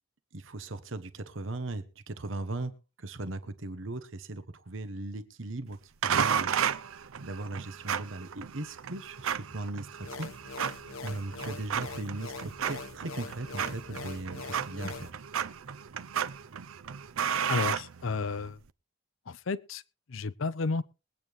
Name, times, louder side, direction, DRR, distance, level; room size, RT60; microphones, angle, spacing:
voice 1, 0.3-6.8 7.2-15.1, right 2 dB, 70° right, 1.1 m, -39 dB
sound 1, 6.0-18.5, right 8 dB, 85° right, 0.6 m, -34 dB
sound 2, 10.0-15.1, left 4 dB, 90° left, 1.1 m, -43 dB
voice 2, 17.5-18.6 19.3-19.8 20.1-20.8, left 4 dB, 70° left, 0.6 m, -32 dB
22.0 x 8.9 x 3.2 m
head